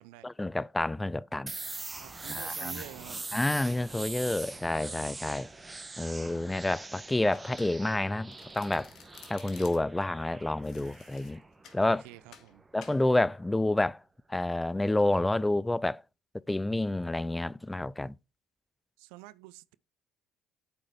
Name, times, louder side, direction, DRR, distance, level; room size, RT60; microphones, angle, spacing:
voice 1, 0.2-1.5 2.3-2.8 3.3-5.5 6.0-8.9 9.3-11.4 11.7-12.0 12.7-14.0 14.3-16.0 16.5-18.1, left 2 dB, 10° left, 0.3 m, -29 dB
sound 1, 1.5-13.1, right 3 dB, 20° right, 1.1 m, -43 dB
voice 2, 2.0-3.3 11.8-12.6 19.0-19.7, right 18 dB, 85° right, 0.4 m, -48 dB
Domestic sounds home sounds, 7.3-8.0 8.3-10.0 10.6-11.8 12.3-12.5 12.8-13.0, left 8 dB, 65° left, 1.7 m, -53 dB
8.1 x 5.0 x 4.6 m
supercardioid pair, 75°, 0 cm